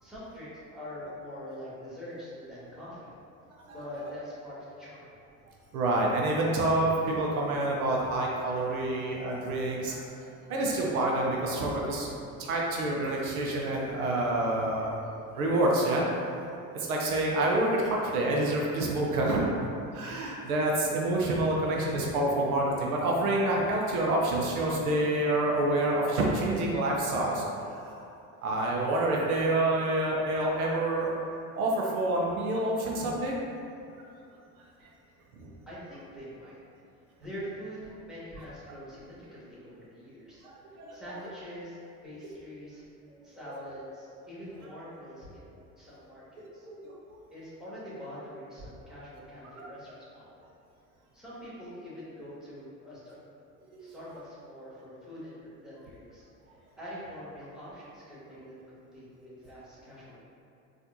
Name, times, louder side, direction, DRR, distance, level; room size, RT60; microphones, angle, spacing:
voice 1, 0.0-3.1 3.7-5.1 35.7-36.6 37.2-42.8 43.2-46.7 47.3-50.4 51.1-53.2 53.8-56.3 56.8-60.2, equal, ahead, -10 dB, 1.5 m, -44 dB
voice 2, 5.7-12.1 12.4-16.1 16.7-19.4 19.9-27.5 27.7-28.1 28.4-31.1 31.6-33.4 34.0-34.1 35.4-35.5 40.4-41.2 46.6-46.9 49.6-49.7 53.7-53.9, right 1 dB, 90° right, -2 dB, 0.6 m, -28 dB
4.1 x 2.5 x 2.5 m, 2.6 s
hypercardioid pair, 70°, 42 cm